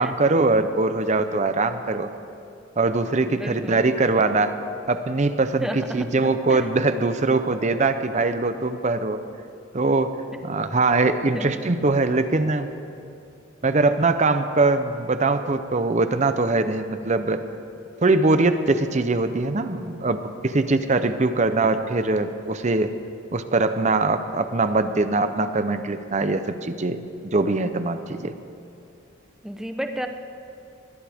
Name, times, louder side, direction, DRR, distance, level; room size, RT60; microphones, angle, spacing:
voice 1, 0.0-2.1 2.8-4.6 4.9-9.2 9.7-10.1 10.4-12.7 13.6-17.4 18.0-22.9 23.3-28.3, right 3 dB, 35° right, 10 dB, 0.7 m, -22 dB
voice 2, 3.3-3.8 5.6-6.0 6.5-6.6 11.3-11.5 29.4-30.1, equal, ahead, 6 dB, 0.7 m, -31 dB
21.5 x 16.5 x 3.6 m, 2.7 s
head